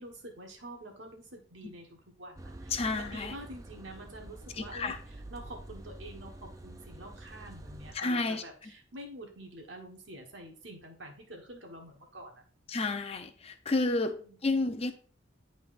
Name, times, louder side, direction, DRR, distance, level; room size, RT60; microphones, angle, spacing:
voice 1, 0.0-12.4 14.0-14.4, right 1 dB, 70° right, 1 dB, 1.4 m, -47 dB
sound 1, 2.4-7.9, right 1 dB, 15° right, 0.4 m, -47 dB
voice 2, 2.7-3.3 4.5-5.0 7.9-8.4 12.7-14.2 14.4-14.9, left 3 dB, 30° left, 7 dB, 0.6 m, -31 dB
10.5 x 4.0 x 2.5 m, 0.44 s
head